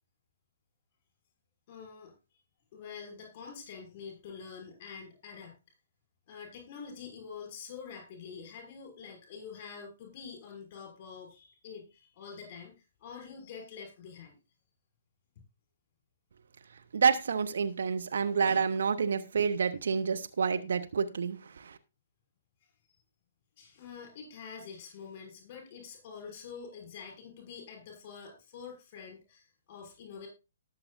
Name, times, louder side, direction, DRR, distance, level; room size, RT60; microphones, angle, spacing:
voice 1, 1.7-2.1 2.7-5.6 6.3-12.7 13.0-14.4 22.8-22.9 23.6-30.3, left 6 dB, 35° left, 5.8 m, -46 dB
voice 2, 16.9-21.8, right 6 dB, 55° right, 0.9 m, -28 dB
19.0 x 7.2 x 2.6 m
figure-of-eight pair, 125°, 0 cm